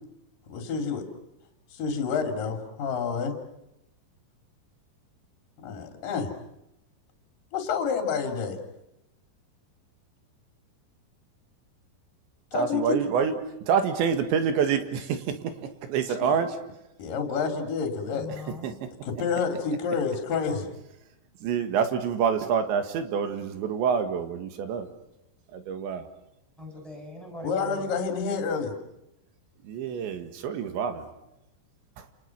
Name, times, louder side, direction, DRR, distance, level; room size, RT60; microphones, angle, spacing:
voice 1, 0.5-1.0 1.8-3.4 5.6-6.3 7.5-8.6 12.5-13.0 16.2-16.3 17.0-18.3 19.0-20.7 27.4-28.7, left 5 dB, 50° left, 3.9 m, -28 dB
voice 2, 12.5-13.4 13.7-15.6 15.9-16.6 18.6-18.9 21.4-24.9 25.5-26.1 29.6-31.1 32.0-32.1, right 7 dB, 75° right, 4.0 m, -27 dB
voice 3, 18.1-18.8 26.6-27.9, left 2 dB, ahead, 6.5 m, -41 dB
29.0 x 29.0 x 5.9 m
omnidirectional pair, 5.5 m